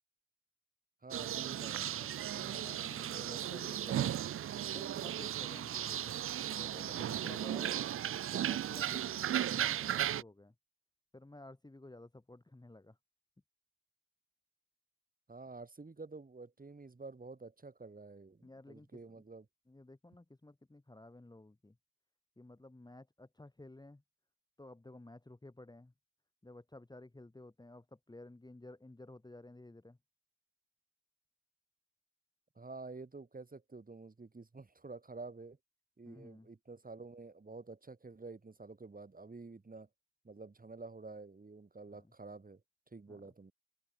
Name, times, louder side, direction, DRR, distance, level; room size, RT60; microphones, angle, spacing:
voice 1, 1.0-2.2 15.3-19.5 32.5-35.6 36.0-39.9 40.2-42.6 42.9-43.5, right 3 dB, 25° right, 2.7 m, -49 dB
sound 1, 1.1-10.2, right 11 dB, 45° right, 0.4 m, -36 dB
voice 2, 2.3-4.2 4.7-6.2 6.6-7.9 8.3-9.2 9.5-10.5 11.1-13.0 18.4-18.9 19.1-19.2 19.7-21.7 22.4-24.0 24.6-25.9 26.4-30.0 36.0-36.5 43.1-43.2, left 2 dB, 15° left, 1.6 m, -53 dB
open air
cardioid pair, 70°, 32 cm